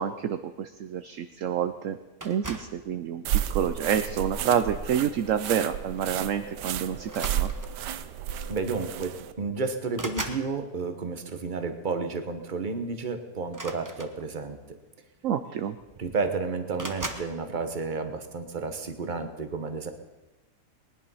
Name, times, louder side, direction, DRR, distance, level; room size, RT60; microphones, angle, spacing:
voice 1, 0.0-2.0 2.2-3.2 3.5-7.5 15.2-15.8, right 8 dB, 60° right, 9 dB, 0.9 m, -28 dB
sound 1, 2.2-2.8 3.7-4.0 5.5-5.7 6.0-6.2 7.0-7.9 8.9-9.0 9.3-10.5 13.5-14.6 15.5-15.6 15.8-16.3 16.8-17.3, right 2 dB, 15° right, 0.8 m, -38 dB
sound 2, 3.2-9.3, right 10 dB, 90° right, 1.3 m, -32 dB
voice 2, 8.5-14.8 16.0-19.9, right 4 dB, 30° right, 7 dB, 1.2 m, -31 dB
19.5 x 10.5 x 5.6 m, 1.1 s
omnidirectional pair, 1.8 m